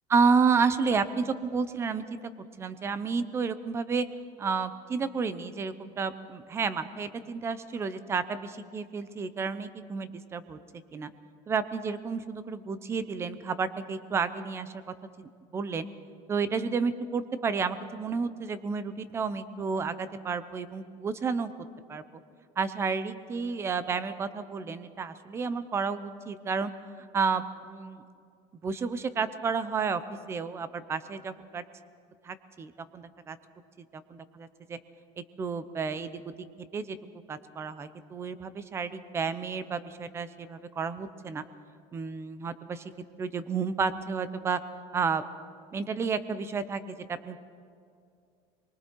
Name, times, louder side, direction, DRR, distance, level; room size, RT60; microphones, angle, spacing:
voice 1, 0.1-2.2 2.6-4.1 4.4-10.6 10.9-11.1 11.5-14.7 15.2-15.9 16.3-21.5 21.9-22.0 22.6-26.7 27.0-28.0 28.6-30.0 30.3-31.6 32.2-33.4 34.1-34.8 35.4-36.3 36.7-37.0 37.3-41.4 41.9-42.8 43.2-44.6 44.9-45.2 45.7-47.0 47.2-47.4, right 5 dB, 15° right, 13 dB, 0.7 m, -31 dB
25.0 x 23.5 x 4.6 m, 2.4 s
cardioid pair, 170°, 15 cm